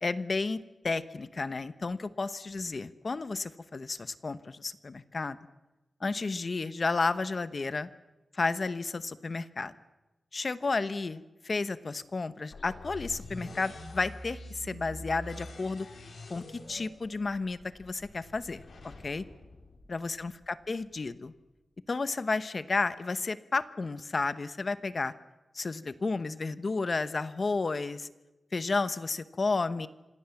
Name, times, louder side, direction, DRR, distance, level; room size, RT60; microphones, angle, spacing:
voice 1, 0.0-5.4 6.0-7.9 8.3-9.7 10.3-15.9 16.3-18.6 19.0-19.2 19.9-21.3 21.9-25.1 25.5-28.1 28.5-29.9, left 3 dB, 45° left, 13 dB, 1.0 m, -32 dB
sound 1, 12.5-20.4, left 1 dB, 75° left, 5.3 m, -46 dB
27.0 x 26.0 x 7.2 m, 1.1 s
wide cardioid pair, 150°, 0 cm